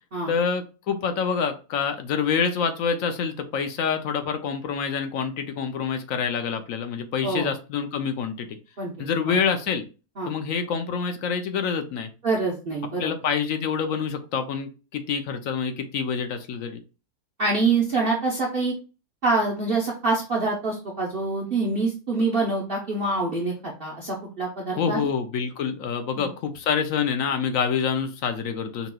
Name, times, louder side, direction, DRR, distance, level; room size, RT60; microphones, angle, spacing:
voice 1, 0.3-8.5 9.0-9.8 10.3-12.1 13.0-16.8 24.8-28.9, left 6 dB, 65° left, 7 dB, 0.9 m, -26 dB
voice 2, 12.2-13.1 17.4-18.7 19.2-25.1 26.1-26.3, right 3 dB, 45° right, -2 dB, 0.8 m, -25 dB
5.5 x 2.9 x 2.2 m, 0.33 s
omnidirectional pair, 1.7 m